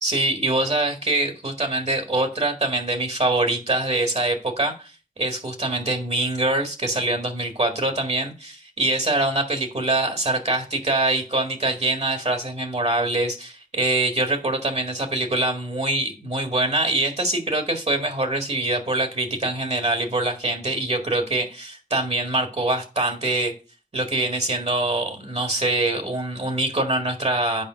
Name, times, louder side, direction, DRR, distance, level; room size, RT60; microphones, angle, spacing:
voice 1, 0.0-23.5 23.9-27.6, right 2 dB, 50° right, 1.8 m, -24 dB
8.8 x 5.1 x 5.1 m
wide cardioid pair, 70°, 14 cm